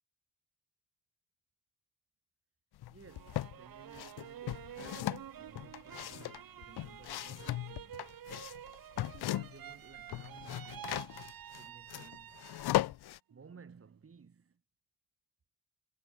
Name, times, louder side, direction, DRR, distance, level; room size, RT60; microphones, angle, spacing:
sound 1, 2.8-3.6 3.9-9.7 10.0-13.2, left 14 dB, 80° left, 1.1 m, -37 dB
voice 1, 2.9-8.1 8.9-11.0 11.6-12.4 13.3-14.6, right 5 dB, 35° right, 5.4 m, -57 dB
sound 2, 3.1-12.9 13.3-14.0, right 11 dB, 65° right, 1.5 m, -50 dB
cardioid pair, 120°, 38 cm